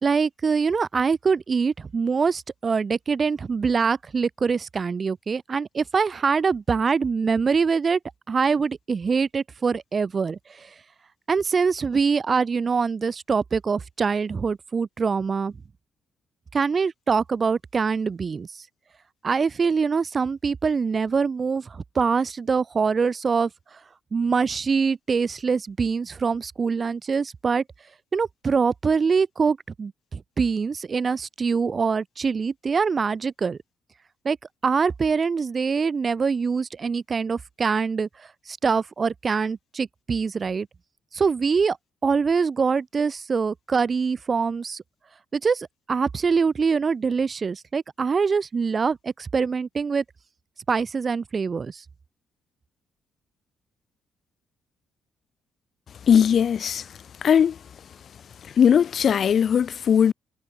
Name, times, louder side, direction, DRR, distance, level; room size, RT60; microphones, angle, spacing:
voice 1, 0.0-8.0 8.3-10.7 11.3-15.5 16.5-18.5 19.2-23.5 24.1-27.6 28.1-33.6 34.2-34.4 34.6-38.1 38.5-40.7 41.1-41.8 42.0-44.8 45.3-50.0 50.7-51.8, right 5 dB, 40° right, 3.0 m, -24 dB
voice 2, 56.1-56.9 57.2-57.6 58.5-60.1, left 8 dB, 55° left, 3.3 m, -19 dB
cardioid pair, 90°, 0 cm